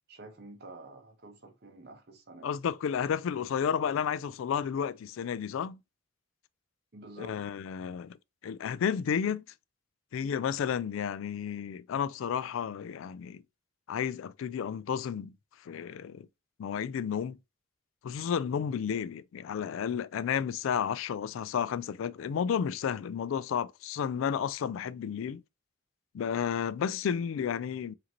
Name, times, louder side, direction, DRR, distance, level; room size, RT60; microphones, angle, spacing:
voice 1, 0.1-2.6 6.9-7.4, right 2 dB, 50° right, 0.9 m, -49 dB
voice 2, 2.4-5.8 7.2-8.2 8.4-9.4 10.1-13.4 13.9-15.3 15.6-16.3 16.6-17.4 18.0-25.4 26.1-27.9, left 7 dB, 75° left, 0.3 m, -32 dB
5.0 x 2.7 x 2.9 m
head